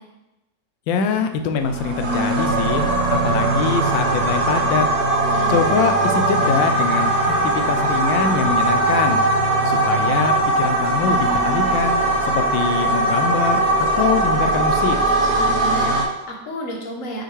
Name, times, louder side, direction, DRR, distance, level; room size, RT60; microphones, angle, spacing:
voice 1, 0.9-4.9 5.5-9.2 9.6-13.6 14.0-15.0, left 6 dB, 85° left, 7 dB, 1.3 m, -23 dB
sound 1, 1.6-16.1, right 2 dB, 65° right, 1.1 m, -20 dB
voice 2, 5.3-5.7 15.3-17.2, right 1 dB, 50° left, 0 dB, 1.2 m, -31 dB
6.3 x 5.0 x 3.2 m, 0.95 s
omnidirectional pair, 2.0 m